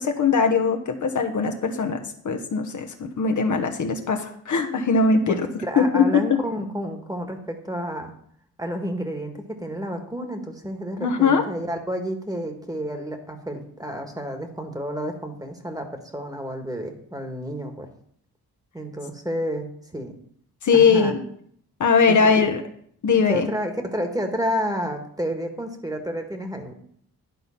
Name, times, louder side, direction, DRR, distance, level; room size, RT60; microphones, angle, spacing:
voice 1, 0.0-5.3 5.8-6.3 11.0-11.4 20.6-21.2 21.8-22.6 23.0-23.5, left 5 dB, 50° left, 5 dB, 1.0 m, -20 dB
voice 2, 5.7-8.1 8.6-17.9 18.7-20.1 20.7-21.1 22.1-22.4 23.3-26.7, equal, 10° right, 5 dB, 1.6 m, -30 dB
11.0 x 3.9 x 5.7 m, 0.64 s
cardioid pair, 65°, 37 cm